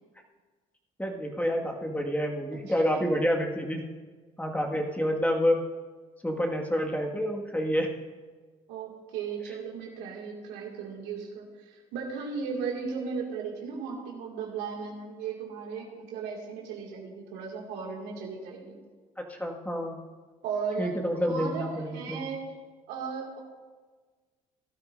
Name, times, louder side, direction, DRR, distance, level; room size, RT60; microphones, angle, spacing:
voice 1, 1.0-3.8 4.4-5.6 6.2-7.9 19.2-20.0 20.8-22.3, equal, 10° left, 1 dB, 1.9 m, -28 dB
voice 2, 8.7-18.8 20.4-21.0 21.2-22.5 22.9-23.4, right 5 dB, 75° right, -1 dB, 2.3 m, -36 dB
17.5 x 12.5 x 2.7 m, 1.4 s
hypercardioid pair, 55°, 17 cm